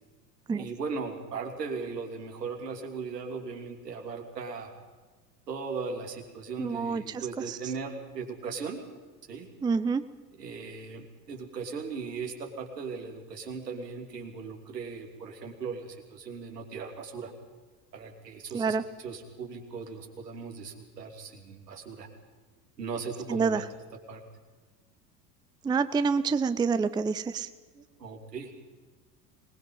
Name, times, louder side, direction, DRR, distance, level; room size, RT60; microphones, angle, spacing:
voice 1, 0.6-4.7 5.5-8.8 9.3-9.5 10.4-17.3 17.9-22.1 22.8-23.6 24.1-24.2 27.7-28.5, right 5 dB, 75° right, 2 dB, 3.3 m, -38 dB
voice 2, 6.6-7.6 9.6-10.0 18.5-18.8 23.3-23.6 25.6-27.5, right 5 dB, 10° right, 13 dB, 0.6 m, -27 dB
24.5 x 20.0 x 5.6 m, 1.4 s
figure-of-eight pair, 75°, 49 cm